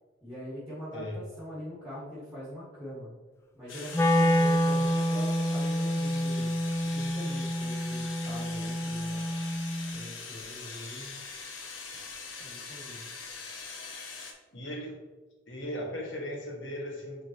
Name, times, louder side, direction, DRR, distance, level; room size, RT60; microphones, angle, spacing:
voice 1, 0.2-3.1 3.5-6.5 6.9-9.3 9.9-11.1 12.4-13.1, equal, 5° right, -8 dB, 1.9 m, -42 dB
sound 1, 3.7-14.3, left 4 dB, 90° left, 1.0 m, -42 dB
Wind instrument woodwind instrument, 3.9-10.0, equal, 15° left, 0.4 m, -28 dB
voice 2, 14.5-15.0 15.5-17.2, equal, 70° left, -1 dB, 1.6 m, -37 dB
8.5 x 3.9 x 3.0 m, 1.3 s
head